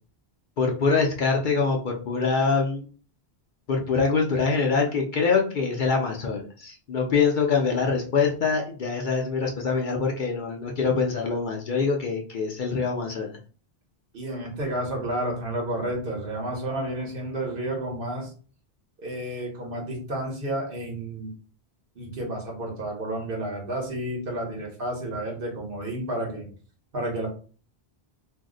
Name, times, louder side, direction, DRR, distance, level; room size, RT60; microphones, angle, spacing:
voice 1, 0.6-2.8 3.7-13.4, left 4 dB, 60° left, 1 dB, 0.6 m, -24 dB
voice 2, 14.1-18.3 19.0-21.3 22.0-26.5 26.9-27.3, right 1 dB, 60° right, -1 dB, 1.1 m, -31 dB
2.6 x 2.0 x 3.6 m, 0.39 s
omnidirectional pair, 1.0 m